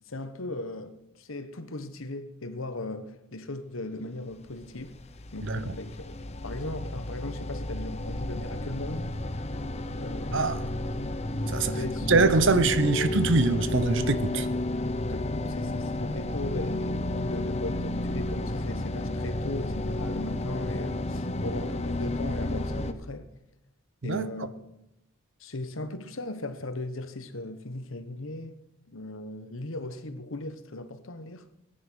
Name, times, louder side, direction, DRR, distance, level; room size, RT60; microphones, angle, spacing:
voice 1, 0.1-5.0 5.3-6.2 6.4-9.2 10.0-10.5 11.7-13.2 15.1-23.3 24.0-24.5 25.4-31.5, left 2 dB, 65° left, 1.2 m, -38 dB
sound 1, 4.5-22.9, left 1 dB, 30° left, 0.8 m, -32 dB
voice 2, 5.4-5.7 10.3-10.6 11.5-11.8 12.1-14.5 24.0-24.3, right 3 dB, 60° right, 0.9 m, -24 dB
18.5 x 10.0 x 6.4 m
head